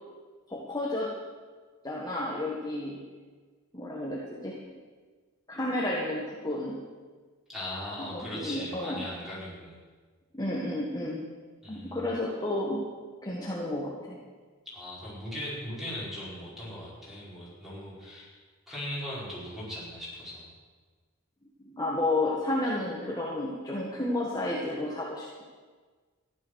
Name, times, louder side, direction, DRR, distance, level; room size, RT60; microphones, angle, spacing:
voice 1, 0.5-1.1 1.8-3.0 3.7-4.6 5.5-6.8 8.0-9.1 10.3-11.3 11.7-12.9 13.2-14.2 21.6-25.4, left 1 dB, 20° left, -4 dB, 1.7 m, -31 dB
voice 2, 7.5-9.8 11.6-12.1 14.7-18.3 18.7-20.5, left 1 dB, ahead, -8 dB, 5.4 m, -39 dB
14.5 x 11.0 x 6.5 m, 1.5 s
head